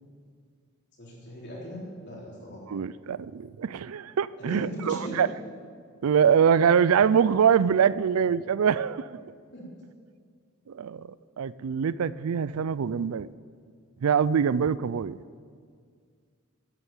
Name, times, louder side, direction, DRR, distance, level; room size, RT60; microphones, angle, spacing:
voice 1, 1.0-2.6 4.4-5.2 9.5-9.6, equal, 50° left, -4 dB, 4.0 m, -38 dB
voice 2, 2.7-5.3 6.0-9.2 10.7-11.1 11.4-13.3 14.0-15.2, right 7 dB, 80° right, 19 dB, 0.4 m, -24 dB
12.0 x 9.2 x 8.7 m, 2.1 s
head